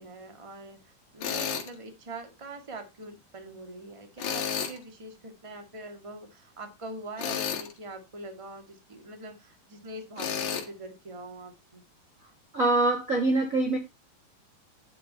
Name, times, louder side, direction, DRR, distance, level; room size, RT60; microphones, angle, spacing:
voice 1, 0.0-11.8, right 2 dB, 15° right, 1.3 m, -43 dB
Tools, 1.2-1.7 4.2-4.8 7.2-7.7 10.2-10.7, left 8 dB, 75° left, 3.4 m, -31 dB
voice 2, 12.5-13.8, right 2 dB, 60° right, 0.8 m, -24 dB
10.0 x 6.7 x 4.2 m
omnidirectional pair, 3.9 m